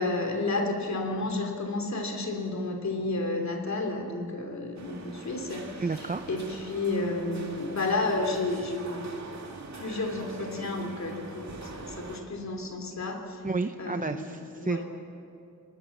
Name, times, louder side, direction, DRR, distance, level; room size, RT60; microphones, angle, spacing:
voice 1, 0.0-9.0 9.4-13.4 13.8-14.3 14.6-14.8, left 2 dB, 60° left, 3 dB, 3.0 m, -31 dB
sound 1, 4.7-12.2, right 3 dB, 60° right, 2.6 m, -43 dB
voice 2, 5.8-6.3 13.4-14.8, right 4 dB, 25° right, 8 dB, 0.6 m, -31 dB
29.5 x 19.0 x 7.2 m, 2.6 s
wide cardioid pair, 130°, 32 cm